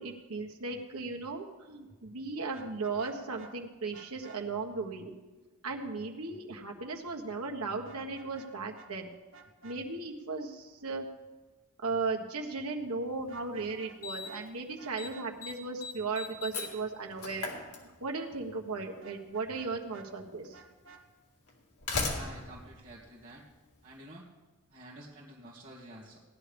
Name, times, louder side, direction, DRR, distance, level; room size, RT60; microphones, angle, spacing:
voice 1, 0.0-5.1 5.6-9.1 9.6-11.1 11.8-17.5 17.8-20.6, right 3 dB, 90° right, 1 dB, 1.6 m, -36 dB
Vehicle horn car horn honking, 2.5-3.5 3.9-4.4 7.8-8.5 8.7-8.9 9.3-9.8 13.2-14.0 14.2-14.4 14.8-15.3 19.0-20.1 20.5-21.0, right 4 dB, 60° right, 1.4 m, -54 dB
Slam, 13.2-13.3 14.0-14.5 14.8-15.1 15.4-18.3 19.5-19.6 20.4-20.5 21.5-23.8, left 3 dB, 90° left, 2.2 m, -38 dB
voice 2, 22.1-23.5 23.8-24.3 24.7-26.2, right 1 dB, 35° right, -9 dB, 2.1 m, -50 dB
17.5 x 11.0 x 3.5 m, 1.3 s
head